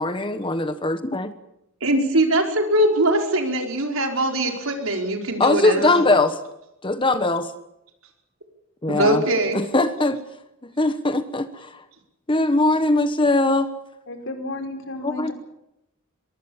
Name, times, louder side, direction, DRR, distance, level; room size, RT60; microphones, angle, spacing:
voice 1, 0.0-1.3 5.4-6.3 6.8-7.5 8.8-9.2 9.5-10.2 10.8-11.7 12.3-13.7 15.0-15.3, left 2 dB, 25° left, 10 dB, 1.3 m, -21 dB
voice 2, 1.8-6.1 8.9-9.6, right 1 dB, 80° right, 4 dB, 5.1 m, -21 dB
voice 3, 14.1-15.3, left 2 dB, 65° left, 6 dB, 5.1 m, -32 dB
24.0 x 22.5 x 7.3 m, 0.85 s
head